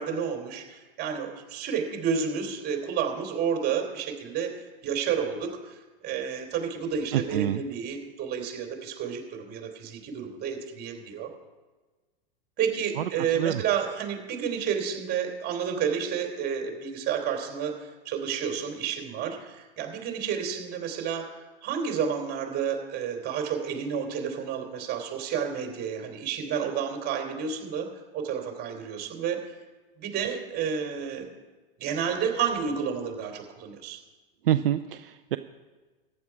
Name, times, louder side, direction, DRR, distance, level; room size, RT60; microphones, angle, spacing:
voice 1, 0.0-11.3 12.6-27.9 28.1-29.6 30.0-31.3 31.8-34.0, right 7 dB, 35° right, 3 dB, 3.2 m, -30 dB
voice 2, 7.1-7.6 13.0-13.1 13.4-13.6 34.4-35.4, right 12 dB, 70° right, 9 dB, 0.6 m, -26 dB
14.5 x 9.9 x 4.8 m, 1.3 s
hypercardioid pair, 100°, 29 cm